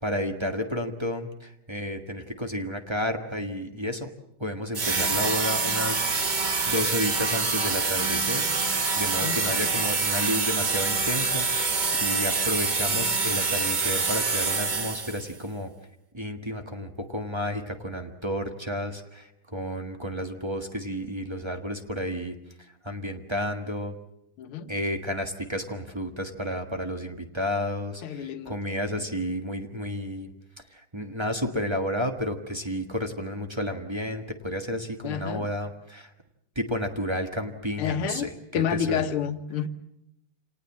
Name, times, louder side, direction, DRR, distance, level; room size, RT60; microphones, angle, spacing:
voice 1, 0.0-4.1 4.4-6.1 6.7-15.7 16.1-22.3 22.8-23.9 24.7-30.3 30.7-36.1 36.5-38.3 38.7-39.1, equal, 15° right, 5 dB, 1.3 m, -31 dB
sound 1, 4.7-15.3, right 4 dB, 35° right, 0.7 m, -26 dB
voice 2, 9.2-9.8 24.4-24.7 28.0-28.5 35.0-35.5 37.8-39.7, left 8 dB, 75° left, 8 dB, 2.0 m, -30 dB
27.5 x 18.5 x 7.4 m, 0.80 s
omnidirectional pair, 2.4 m